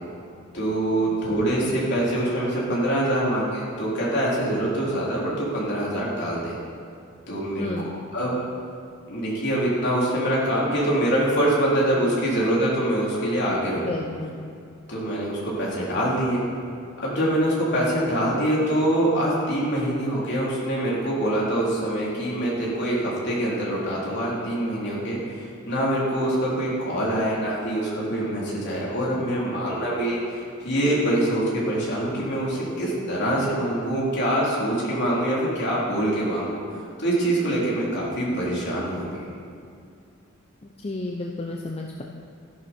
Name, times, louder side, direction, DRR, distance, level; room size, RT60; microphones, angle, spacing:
voice 1, 0.5-6.5 7.3-7.7 8.1-8.4 9.1-13.9 14.9-16.4 17.0-30.2 30.6-39.3, right 1 dB, 55° left, -6 dB, 3.7 m, -24 dB
voice 2, 7.6-8.0 13.7-14.4 40.8-42.0, left 2 dB, 30° left, 0 dB, 0.7 m, -32 dB
14.5 x 11.0 x 4.5 m, 2.4 s
head